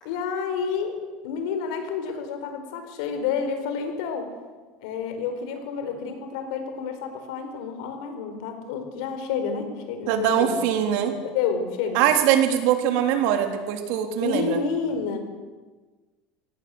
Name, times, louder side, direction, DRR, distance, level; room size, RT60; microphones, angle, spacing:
voice 1, 0.0-1.0 1.2-4.3 4.8-12.1 14.2-15.2, left 6 dB, 75° left, 7 dB, 4.8 m, -29 dB
voice 2, 10.1-11.2 11.9-14.6, right 10 dB, 65° right, 5 dB, 3.6 m, -22 dB
24.0 x 18.0 x 7.9 m, 1.3 s
cardioid pair, 150°, 4 cm